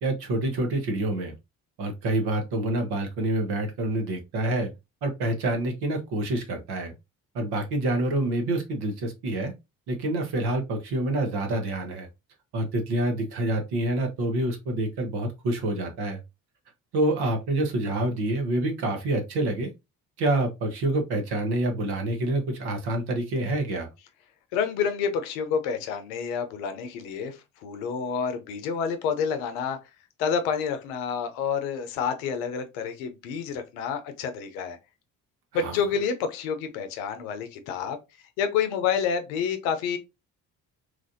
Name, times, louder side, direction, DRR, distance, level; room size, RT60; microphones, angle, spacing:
voice 1, 0.0-1.3 1.8-4.7 5.0-6.9 7.3-9.5 9.9-12.1 12.5-16.2 16.9-19.7 20.2-23.9 35.5-35.8, right 1 dB, 75° right, 1.1 m, -27 dB
voice 2, 24.5-29.8 30.2-34.8 35.5-38.0 38.4-40.0, left 6 dB, 90° left, 0.7 m, -28 dB
3.1 x 2.5 x 2.5 m
hypercardioid pair, 55°, 40 cm